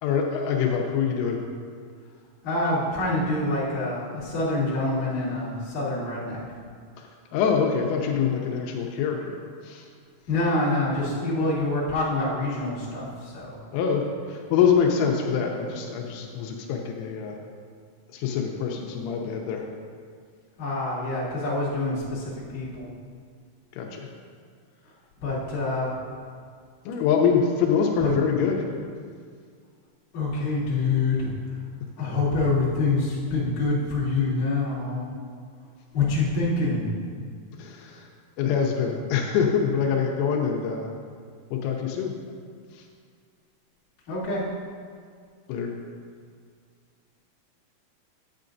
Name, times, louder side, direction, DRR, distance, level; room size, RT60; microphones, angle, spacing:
voice 1, 0.0-1.4 7.0-9.9 13.7-17.4 18.1-19.7 23.7-24.1 26.9-28.7 37.6-38.1 38.4-40.9 41.5-42.1 42.7-42.8 45.5-45.7, left 6 dB, 85° left, 1 dB, 3.5 m, -25 dB
voice 2, 2.4-6.4 10.3-13.6 20.6-22.2 22.5-22.9 25.2-25.9 28.0-28.1 30.1-31.3 32.0-35.1 35.9-37.0 44.1-44.4, left 2 dB, 45° left, -10 dB, 3.3 m, -26 dB
10.5 x 8.3 x 2.6 m, 2.1 s
omnidirectional pair, 6.0 m